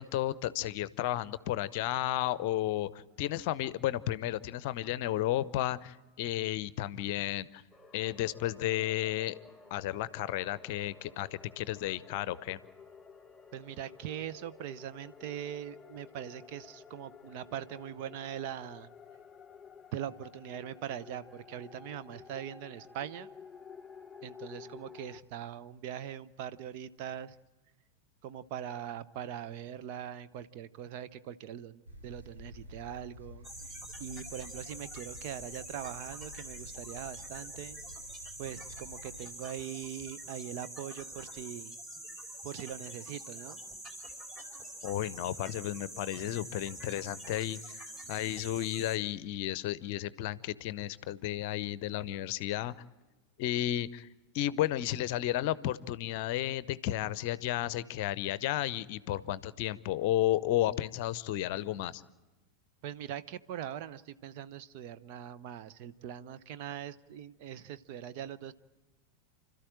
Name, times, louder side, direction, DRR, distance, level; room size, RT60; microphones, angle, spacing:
voice 1, 0.0-2.9 3.2-7.6 7.9-9.3 9.7-12.6 44.8-52.7 53.4-54.1 54.3-62.0, left 13 dB, 45° left, 18 dB, 0.7 m, -33 dB
sound 1, 7.7-25.2, left 5 dB, 10° left, 0.9 m, -53 dB
voice 2, 13.5-18.9 19.9-23.3 24.2-27.4 28.2-33.7 34.0-37.8 38.4-41.8 42.4-43.6 62.8-68.5, right 10 dB, 45° right, 13 dB, 0.8 m, -41 dB
Binaural Thunder A, 31.9-39.3, equal, 80° right, 4.1 m, -51 dB
sound 2, 33.4-49.0, right 1 dB, 20° right, 4.0 m, -46 dB
30.0 x 13.5 x 8.9 m, 1.2 s
figure-of-eight pair, 90°, 0 cm